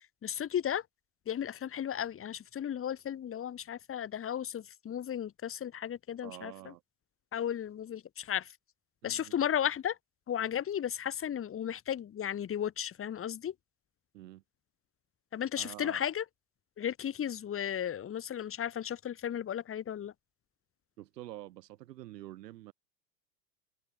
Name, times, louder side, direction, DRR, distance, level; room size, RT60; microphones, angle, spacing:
voice 1, 0.2-0.8 1.3-6.5 7.3-8.5 9.0-10.0 10.3-13.5 15.3-16.2 16.8-20.1, left 9 dB, 25° left, 3.3 m, -34 dB
voice 2, 6.2-6.8 9.0-9.4 14.1-14.4 15.6-16.1 21.0-22.7, right 15 dB, 75° right, 7.6 m, -47 dB
open air
hypercardioid pair, 115°, 49 cm